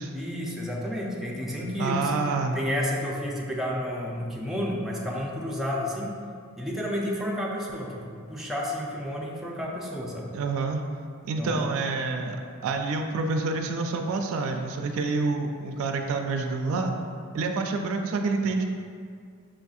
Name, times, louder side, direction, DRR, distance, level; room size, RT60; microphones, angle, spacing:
voice 1, 0.1-2.1 2.5-6.1 6.6-10.3 11.4-11.7, equal, ahead, -4 dB, 0.4 m, -31 dB
voice 2, 1.8-2.6 10.3-10.8 11.2-12.4 12.6-16.9 17.3-18.7, right 3 dB, 65° right, 4 dB, 0.3 m, -27 dB
6.1 x 2.6 x 2.3 m, 2.2 s
head